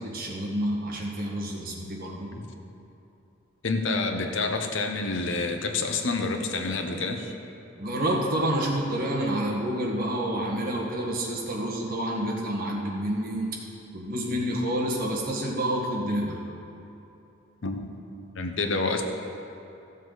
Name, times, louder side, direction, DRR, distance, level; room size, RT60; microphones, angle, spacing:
voice 1, 0.0-2.3 7.8-13.5 13.9-16.4, right 1 dB, 45° right, -2 dB, 1.6 m, -28 dB
voice 2, 3.6-7.3 17.6-18.0 18.4-19.0, left 3 dB, 65° left, 4 dB, 0.8 m, -28 dB
14.5 x 7.4 x 4.0 m, 2.9 s
head